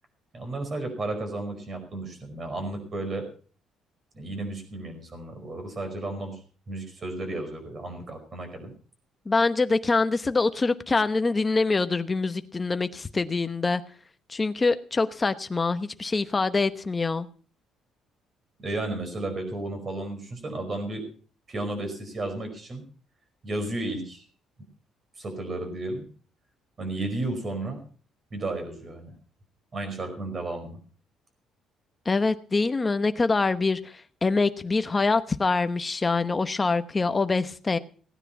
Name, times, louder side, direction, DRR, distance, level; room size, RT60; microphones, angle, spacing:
voice 1, 0.3-3.3 4.1-6.4 6.7-8.7 18.6-21.0 21.5-22.8 23.4-24.2 25.2-26.0 26.8-27.8 28.3-29.1 29.7-30.8, right 2 dB, 30° right, 5.0 m, -33 dB
voice 2, 9.3-13.8 14.3-17.3 32.1-37.8, left 3 dB, 20° left, 0.9 m, -25 dB
17.5 x 9.9 x 5.9 m
cardioid pair, 155°, 0 cm